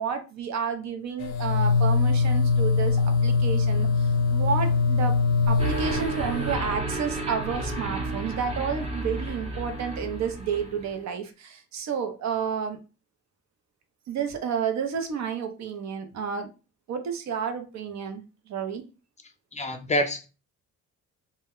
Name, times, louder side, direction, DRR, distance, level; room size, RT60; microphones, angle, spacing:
voice 1, 0.0-3.9 4.3-5.1 5.5-12.8 14.1-16.5 16.9-18.2 18.5-18.8, right 6 dB, 65° right, 0.6 m, -30 dB
sound 1, 1.2-6.5, left 4 dB, 90° left, 0.5 m, -23 dB
sound 2, 5.6-10.9, right 2 dB, 20° right, 0.7 m, -32 dB
voice 2, 19.5-20.3, left 1 dB, 25° left, 0.4 m, -26 dB
2.1 x 2.1 x 3.5 m
cardioid pair, 90°, 30 cm